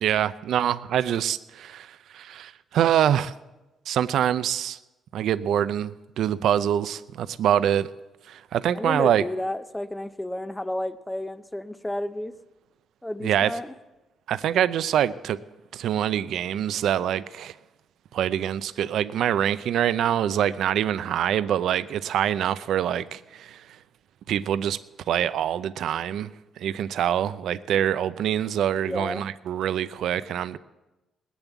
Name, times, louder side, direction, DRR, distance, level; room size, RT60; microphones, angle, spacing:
voice 1, 0.0-3.3 3.9-4.8 5.1-7.9 8.3-9.2 13.2-13.5 14.3-15.4 15.7-17.5 18.1-23.7 24.3-24.8 25.1-30.6, right 10 dB, 75° right, 15 dB, 0.4 m, -25 dB
voice 2, 8.7-12.3 13.0-13.7 28.8-29.3, left 1 dB, 5° left, 13 dB, 0.5 m, -31 dB
19.5 x 7.0 x 8.2 m, 1.1 s
cardioid pair, 130°, 0 cm